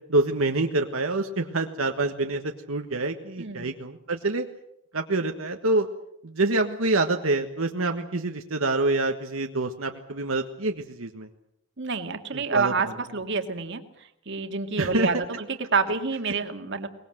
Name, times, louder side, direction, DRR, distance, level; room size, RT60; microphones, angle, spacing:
voice 1, 0.1-4.5 4.9-5.9 6.2-11.3 12.3-12.7 14.8-15.1, right 2 dB, 85° right, 4 dB, 1.5 m, -26 dB
voice 2, 3.4-3.7 11.8-15.2 15.5-16.9, right 4 dB, 60° right, 7 dB, 2.1 m, -28 dB
23.5 x 20.0 x 7.8 m, 0.75 s
head